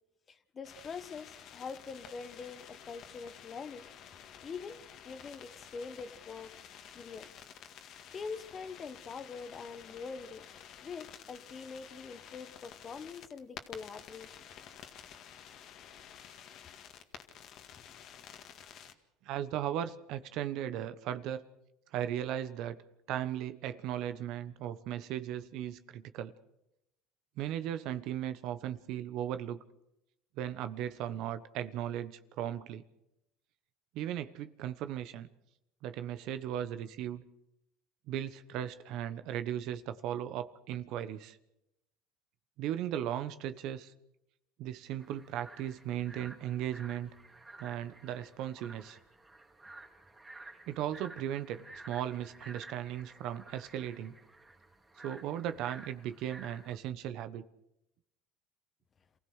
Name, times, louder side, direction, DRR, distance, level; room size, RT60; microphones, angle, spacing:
voice 1, 0.3-3.9 4.4-6.5 6.9-7.4 8.1-10.5 10.8-14.4, left 5 dB, 30° left, 1.4 m, -44 dB
sound 1, 0.6-18.9, left 9 dB, 55° left, 2.0 m, -51 dB
voice 2, 19.2-21.4 21.9-22.8 23.1-26.3 27.4-29.6 30.4-32.8 33.9-35.3 35.8-37.2 38.1-41.4 42.6-43.9 44.6-47.1 47.6-49.0 50.7-54.2 55.0-57.5, right 11 dB, 60° right, 1.1 m, -37 dB
sound 2, 45.0-56.8, right 2 dB, 15° right, 3.3 m, -53 dB
27.5 x 16.5 x 6.4 m
supercardioid pair, 105°, 0 cm